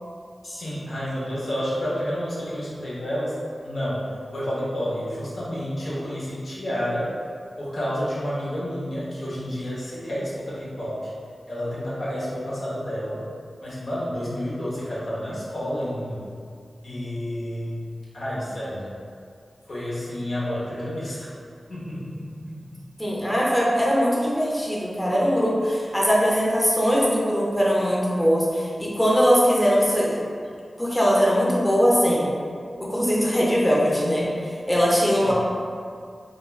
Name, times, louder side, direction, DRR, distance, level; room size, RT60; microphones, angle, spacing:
voice 1, 0.4-3.4 3.6-7.1 7.6-11.1 11.5-13.2 13.6-16.2 16.8-17.8 18.1-18.9 19.7-21.3 21.7-22.8 35.2-35.3, equal, 85° left, -9 dB, 0.8 m, -30 dB
voice 2, 23.0-30.2 30.8-32.3 32.8-34.3 34.7-35.3, equal, 10° left, -5 dB, 0.6 m, -21 dB
2.9 x 2.4 x 2.2 m, 2.2 s
cardioid pair, 50°, 0 cm